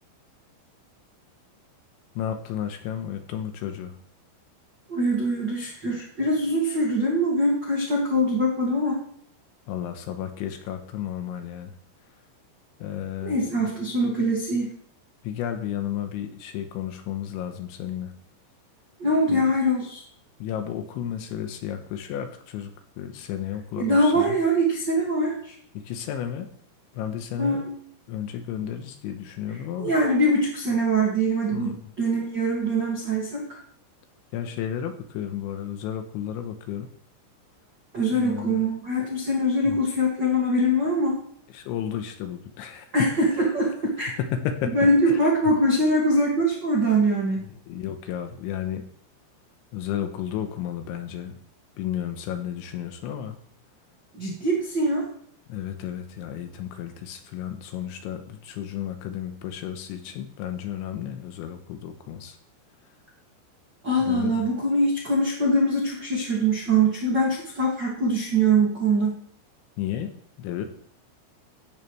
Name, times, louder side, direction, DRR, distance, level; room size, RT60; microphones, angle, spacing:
voice 1, 2.2-4.0 9.7-11.7 12.8-13.8 15.2-18.2 19.3-19.4 20.4-24.4 25.7-26.5 26.9-27.7 28.1-29.9 31.5-31.8 34.3-36.9 38.1-38.7 39.7-39.8 41.5-43.1 44.2-44.8 45.1-45.3 47.7-48.9 49.7-51.4 51.8-53.4 55.5-62.4 64.0-64.5 69.8-70.7, left 10 dB, 80° left, 7 dB, 3.0 m, -33 dB
voice 2, 4.9-9.0 13.2-14.7 19.0-20.0 23.8-25.5 27.4-27.7 29.8-33.4 37.9-41.2 42.9-44.1 44.7-47.5 54.1-55.0 63.8-69.2, right 1 dB, 70° right, -3 dB, 1.0 m, -23 dB
16.5 x 11.0 x 3.3 m, 0.63 s
omnidirectional pair, 5.9 m